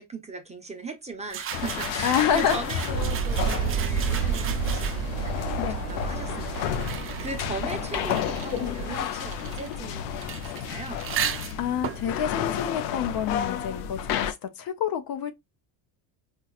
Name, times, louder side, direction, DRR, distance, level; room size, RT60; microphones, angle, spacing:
voice 1, 0.0-11.1, right 3 dB, 15° right, 0.8 m, -38 dB
sound 1, 1.3-5.3 6.0-13.5, right 9 dB, 30° right, 0.4 m, -37 dB
sound 2, 1.5-14.3, left 9 dB, 90° left, 0.6 m, -31 dB
voice 2, 2.0-2.6 5.6-5.7 11.6-15.3, left 8 dB, 50° left, 0.7 m, -27 dB
sound 3, 2.9-9.0, right 7 dB, 55° right, 0.8 m, -31 dB
4.2 x 2.3 x 2.3 m
supercardioid pair, 110°, 46 cm